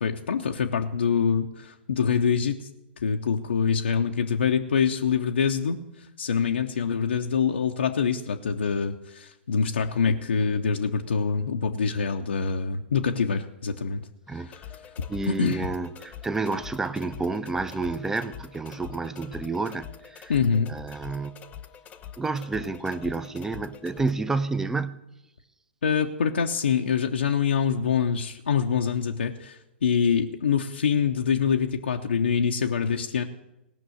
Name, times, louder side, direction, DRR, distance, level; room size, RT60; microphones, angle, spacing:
voice 1, 0.0-2.7 3.0-14.7 15.3-15.7 20.3-20.7 25.8-33.2, left 6 dB, 75° left, 0.7 m, -25 dB
sound 1, 14.5-24.1, left 9 dB, 20° left, 0.9 m, -45 dB
voice 2, 15.1-20.3 20.7-21.4 22.2-25.0, right 3 dB, 5° right, 0.6 m, -30 dB
17.5 x 6.1 x 7.8 m
hypercardioid pair, 115°, 6 cm